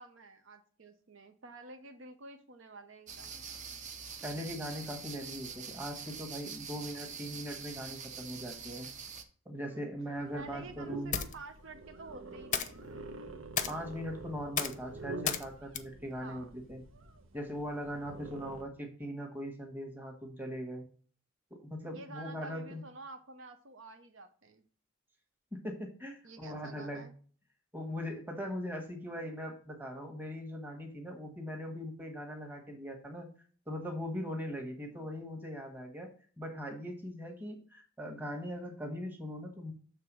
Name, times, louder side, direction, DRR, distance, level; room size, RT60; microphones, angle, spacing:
voice 1, 0.0-3.4 9.6-9.9 10.3-12.8 16.2-16.5 21.9-24.6 26.2-27.1 34.9-35.1, right 3 dB, 70° right, 6 dB, 0.8 m, -50 dB
sound 1, 3.1-9.2, right 6 dB, 40° right, 0.8 m, -45 dB
voice 2, 4.2-8.9 9.4-11.2 13.7-16.8 17.3-20.8 21.6-22.8 25.5-27.1 27.7-33.3 33.7-36.1 36.4-39.7, equal, 10° right, 2 dB, 1.3 m, -40 dB
sound 2, 9.9-17.2, left 8 dB, 40° left, 0.6 m, -39 dB
sound 3, 10.1-18.6, right 2 dB, 90° right, 1.0 m, -47 dB
6.7 x 3.5 x 6.1 m, 0.42 s
head